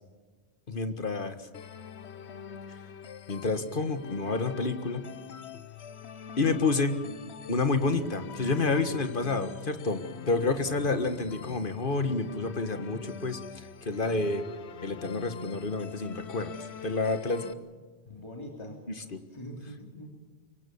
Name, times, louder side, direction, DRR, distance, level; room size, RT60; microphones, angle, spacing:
voice 1, 0.7-1.5 3.3-5.1 6.4-7.0 7.5-13.4 13.8-14.5 14.8-16.5 16.8-17.4 19.1-19.2, left 3 dB, 55° left, 9 dB, 1.7 m, -29 dB
sound 1, 1.5-17.5, left 7 dB, 90° left, 1.2 m, -44 dB
voice 2, 18.1-20.2, equal, 25° left, 1 dB, 3.2 m, -44 dB
24.5 x 23.0 x 7.1 m, 1.4 s
omnidirectional pair, 1.1 m